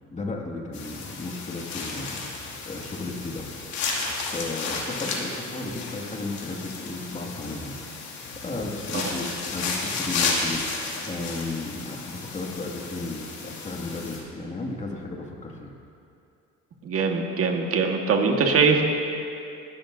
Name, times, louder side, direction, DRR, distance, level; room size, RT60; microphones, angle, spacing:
voice 1, 0.1-3.5 4.3-7.7 8.4-15.7, left 2 dB, 25° left, -1 dB, 2.1 m, -34 dB
sound 1, 0.7-14.2, left 4 dB, 70° left, 2.5 m, -33 dB
voice 2, 16.8-18.8, right 5 dB, 50° right, 2 dB, 1.6 m, -22 dB
20.5 x 12.5 x 2.7 m, 2.6 s
cardioid pair, 115°, 30 cm